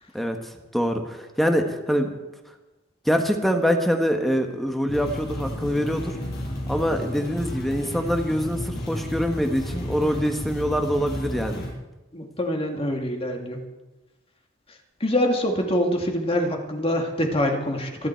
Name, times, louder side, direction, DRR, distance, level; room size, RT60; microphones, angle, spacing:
voice 1, 0.7-2.2 3.0-6.1 6.7-11.6, equal, ahead, 4 dB, 1.4 m, -24 dB
sound 1, 4.9-11.7, left 1 dB, 55° left, 6.1 m, -32 dB
voice 2, 12.1-13.6 15.0-18.1, left 1 dB, 30° left, 2 dB, 2.2 m, -25 dB
25.0 x 11.0 x 4.6 m, 1.1 s
head